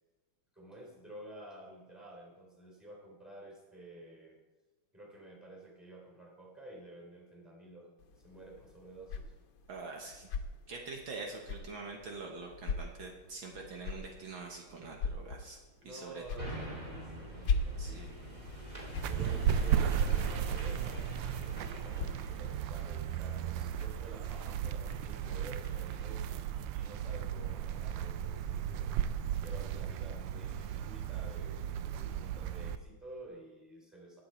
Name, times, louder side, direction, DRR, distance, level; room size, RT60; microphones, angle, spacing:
voice 1, 0.5-4.4 4.9-7.9 8.2-9.3 15.8-26.4 26.7-34.2, right 1 dB, ahead, -1 dB, 3.1 m, -51 dB
sound 1, 8.0-22.1, left 4 dB, 65° left, 1.7 m, -41 dB
voice 2, 9.7-10.3 10.7-15.6 15.8-16.2 17.8-18.1, right 3 dB, 65° right, 1 dB, 1.9 m, -44 dB
sound 2, 16.4-27.8 28.3-28.4, equal, 20° right, 2.4 m, -45 dB
sound 3, 19.0-32.8, right 9 dB, 85° right, 1.5 m, -35 dB
19.0 x 7.2 x 4.4 m, 1.2 s
omnidirectional pair, 2.4 m